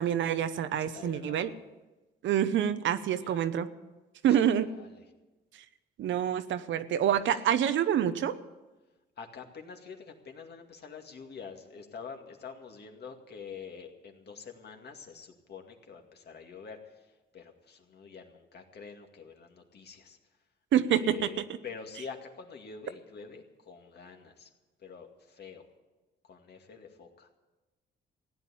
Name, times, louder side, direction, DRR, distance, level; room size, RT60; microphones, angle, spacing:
voice 1, 0.0-1.5 2.2-3.7 4.2-4.7 6.0-8.3 20.7-21.3, right 9 dB, 70° right, 12 dB, 0.9 m, -27 dB
voice 2, 0.8-1.5 3.2-3.5 4.3-4.4 4.7-5.1 7.3-7.4 9.2-17.1 17.3-20.2 20.9-24.5 24.8-25.7 26.2-27.3, left 6 dB, 55° left, 4 dB, 2.2 m, -46 dB
15.5 x 9.4 x 8.5 m, 1.1 s
cardioid pair, 90°, 20 cm